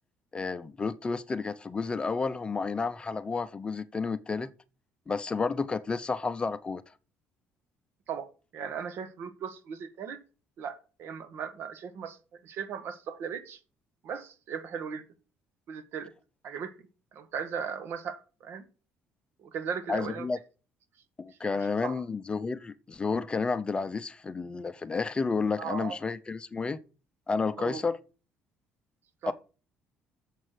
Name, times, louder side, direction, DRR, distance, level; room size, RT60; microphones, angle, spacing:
voice 1, 0.3-4.5 5.1-6.8 19.9-20.4 21.2-26.8 27.3-28.0 29.3-29.4, left 4 dB, 20° left, 0.6 m, -31 dB
voice 2, 8.5-10.2 10.6-13.6 14.0-15.0 15.7-16.1 16.4-16.7 17.1-18.6 19.4-20.3 21.4-22.0 25.6-26.0 27.6-27.8 29.2-29.3, right 7 dB, 60° right, 1.4 m, -37 dB
7.4 x 6.4 x 7.7 m
cardioid pair, 110°, 4 cm